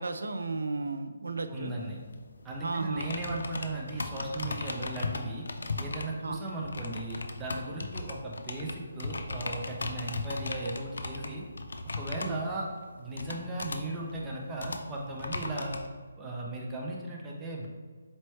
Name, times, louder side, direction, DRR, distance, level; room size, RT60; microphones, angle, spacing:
voice 1, 0.0-1.7 2.6-3.1 6.2-6.4 12.2-12.4, right 3 dB, 80° right, 8 dB, 0.3 m, -34 dB
voice 2, 1.5-2.0 2.4-5.4 5.8-11.4 12.0-12.7 13.0-15.8 16.2-17.7, right 2 dB, 10° right, -3 dB, 0.4 m, -36 dB
sound 1, 1.7-15.9, left 3 dB, 80° left, 0.4 m, -38 dB
4.2 x 3.0 x 3.1 m, 1.5 s
hypercardioid pair, 175°, 0 cm